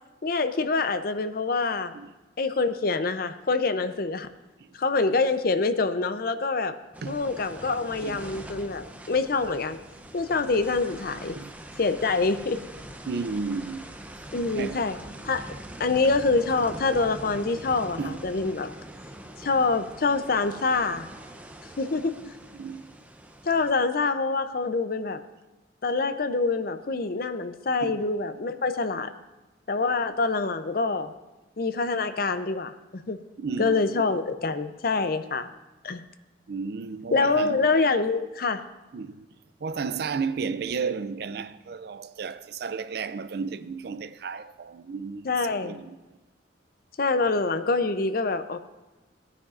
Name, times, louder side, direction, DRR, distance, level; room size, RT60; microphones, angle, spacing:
voice 1, 0.2-1.9 2.4-4.3 4.7-6.8 7.1-9.8 10.1-11.4 11.8-12.6 14.3-15.0 15.2-15.5 15.8-18.7 19.4-21.1 21.8-22.1 23.5-25.2 25.8-29.1 29.7-31.1 31.6-33.2 33.6-35.5 35.8-36.0 37.1-38.6 45.2-45.8 47.0-48.6, left 3 dB, 50° left, 0.6 m, -25 dB
sound 1, 6.9-23.7, right 1 dB, 10° right, 0.6 m, -43 dB
voice 2, 13.1-14.0 14.5-14.8 18.0-18.3 22.5-23.0 27.8-28.0 33.4-34.0 36.5-37.6 38.9-39.2 39.6-46.0, right 5 dB, 55° right, 0.4 m, -33 dB
18.0 x 9.6 x 2.5 m
head